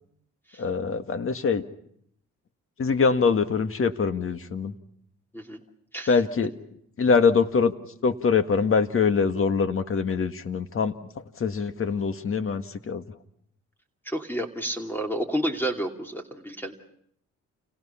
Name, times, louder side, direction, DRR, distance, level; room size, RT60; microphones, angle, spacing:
voice 1, 0.6-1.6 2.8-4.7 6.1-6.5 7.0-7.7 8.0-10.9 11.4-13.0, left 5 dB, 45° left, 9 dB, 1.8 m, -23 dB
voice 2, 14.0-16.7, right 1 dB, 5° left, 4 dB, 2.7 m, -30 dB
30.0 x 29.0 x 5.8 m, 0.70 s
cardioid pair, 90°, 30 cm